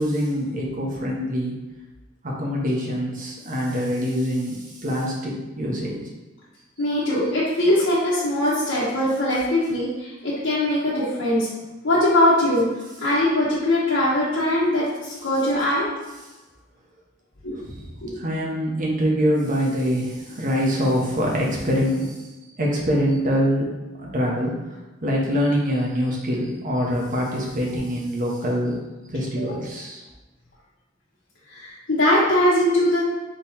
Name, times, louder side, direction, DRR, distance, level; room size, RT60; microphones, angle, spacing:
voice 1, 0.0-1.6 2.2-6.0 17.5-17.9 18.1-22.3 22.6-28.7 29.1-30.0, equal, 45° right, -2 dB, 0.9 m, -24 dB
voice 2, 6.8-11.5 11.8-12.7 13.0-15.9 17.4-17.6 18.0-18.2 31.5-33.0, left 1 dB, 70° left, -10 dB, 1.2 m, -21 dB
3.8 x 3.0 x 4.2 m, 1.1 s
head